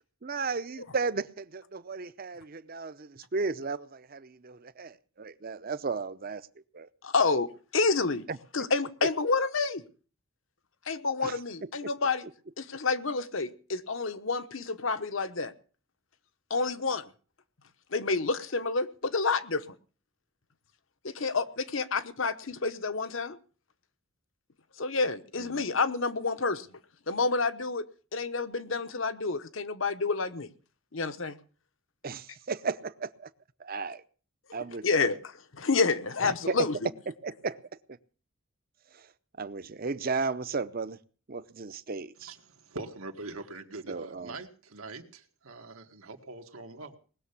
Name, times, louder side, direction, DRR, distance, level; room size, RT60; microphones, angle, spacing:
voice 1, 0.2-6.4 6.7-6.9 8.3-8.4 9.0-9.1 11.2-11.4 25.4-25.6 32.0-33.3 33.6-34.0 34.5-34.9 36.2-36.7 37.1-37.6 37.9-38.0 38.9-39.1 39.4-41.0 41.3-42.3 43.9-44.4, right 4 dB, 45° right, 0.7 m, -34 dB
voice 2, 7.0-7.5 7.7-8.2 8.5-9.8 10.9-12.3 12.6-15.5 16.5-17.0 17.9-19.7 21.0-23.4 24.8-26.7 27.1-27.9 28.1-30.5 30.9-31.4 34.8-36.9, left 4 dB, 65° left, 1.0 m, -29 dB
voice 3, 42.3-47.0, right 3 dB, 90° right, 1.9 m, -43 dB
19.5 x 6.9 x 8.3 m
head